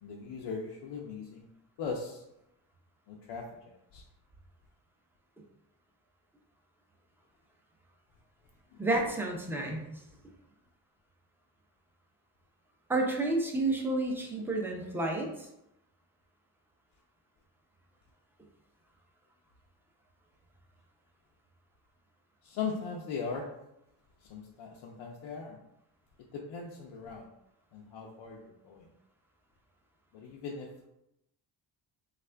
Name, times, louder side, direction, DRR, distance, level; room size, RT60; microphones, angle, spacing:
voice 1, 0.0-1.5 1.8-2.2 3.1-4.0 8.7-8.8 22.4-23.6 24.2-25.6 26.3-27.3 27.7-28.9 30.1-30.9, left 5 dB, 85° left, -1 dB, 0.6 m, -39 dB
voice 2, 8.8-9.8 12.9-15.3, right 2 dB, 5° right, 0 dB, 0.5 m, -30 dB
3.5 x 2.4 x 3.2 m, 0.84 s
cardioid pair, 110°, 46 cm